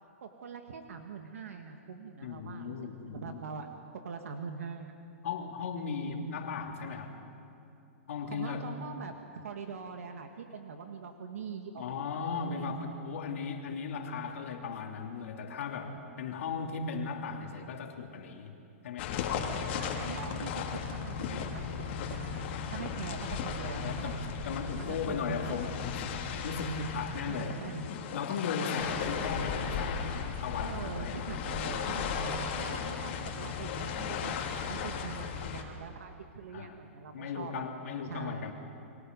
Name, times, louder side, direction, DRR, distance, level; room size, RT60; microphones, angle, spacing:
voice 1, 0.2-3.7 4.0-5.3 8.2-12.7 19.7-24.3 24.8-25.2 27.1-27.9 28.8-29.3 30.6-34.4 34.7-37.6 38.0-38.5, right 5 dB, 80° right, 5 dB, 1.8 m, -43 dB
voice 2, 2.2-3.4 5.2-7.1 8.1-8.7 11.8-18.6 18.8-19.6 23.0-23.1 23.8-24.2 24.4-26.1 26.4-27.6 28.1-31.4 36.5-36.8 37.1-38.5, left 5 dB, 70° left, 3 dB, 2.9 m, -37 dB
sound 1, 19.0-35.6, left 6 dB, 50° left, 2.8 m, -36 dB
30.0 x 23.0 x 5.4 m, 2.7 s
hypercardioid pair, 145°, 8 cm